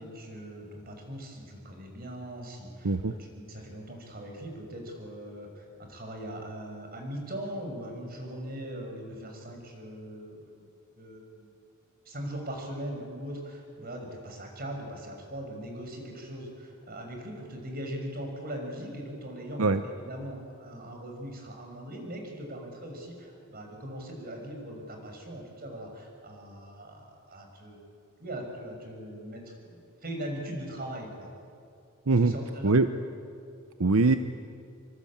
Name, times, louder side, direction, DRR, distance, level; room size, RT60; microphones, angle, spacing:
voice 1, 0.0-10.6 11.0-11.5 12.0-27.8 28.2-31.3 32.1-32.8, right 1 dB, 45° right, 2 dB, 6.2 m, -40 dB
voice 2, 33.8-34.2, right 3 dB, 85° right, 9 dB, 0.8 m, -22 dB
26.5 x 24.5 x 8.8 m, 2.5 s
head